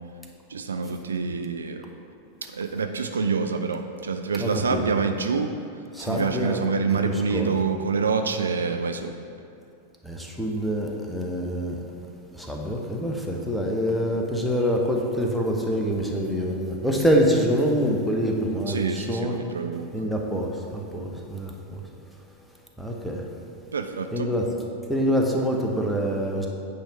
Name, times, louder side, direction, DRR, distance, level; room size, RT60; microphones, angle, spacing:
voice 1, 0.5-1.8 2.4-5.5 6.0-9.1 18.7-19.9 23.7-24.3, right 5 dB, 70° right, 7 dB, 0.3 m, -27 dB
voice 2, 4.4-4.8 5.9-6.6 7.3-7.6 10.0-11.8 12.4-19.4 19.9-21.8 22.8-23.2 24.1-24.4 24.9-26.5, equal, ahead, 0 dB, 0.8 m, -25 dB
8.9 x 3.4 x 5.3 m, 2.5 s
figure-of-eight pair, 90°, 0 cm